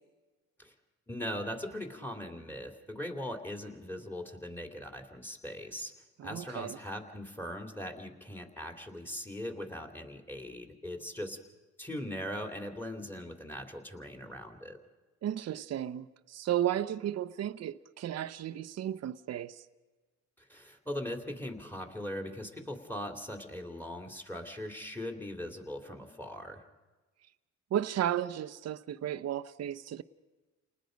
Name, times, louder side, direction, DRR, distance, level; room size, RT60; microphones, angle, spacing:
voice 1, 1.1-5.9 6.2-11.4 11.8-14.8 20.4-26.6, left 1 dB, 5° left, 2.9 m, -40 dB
voice 2, 6.2-6.8 15.2-19.6 27.7-30.0, right 11 dB, 55° right, 0.8 m, -34 dB
29.0 x 20.0 x 5.2 m
cardioid pair, 90°, 30 cm